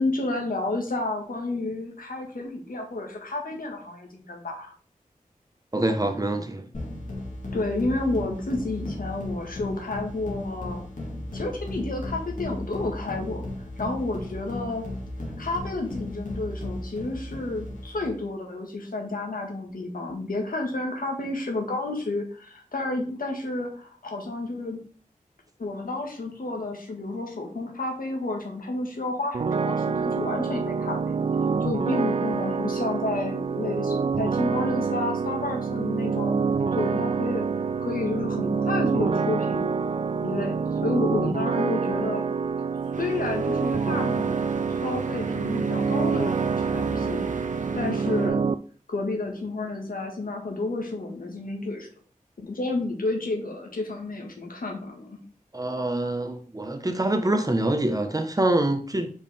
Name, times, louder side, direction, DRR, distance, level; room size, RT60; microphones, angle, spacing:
voice 1, 0.0-4.7 7.5-10.8 11.3-13.4 13.8-14.8 15.4-24.8 25.6-31.2 31.6-37.5 37.8-39.7 40.2-42.2 43.0-47.3 47.7-48.4 48.9-51.9 52.4-55.2, left 2 dB, 80° left, 1.7 m, -31 dB
voice 2, 5.7-6.7 55.5-59.1, right 1 dB, 25° right, 1.1 m, -25 dB
sound 1, 6.7-18.2, left 1 dB, 65° left, 2.1 m, -35 dB
sound 2, 29.3-48.6, right 5 dB, 45° right, 0.4 m, -26 dB
sound 3, 42.9-48.3, right 3 dB, 60° right, 1.0 m, -38 dB
5.5 x 5.0 x 3.5 m
wide cardioid pair, 50°, 14 cm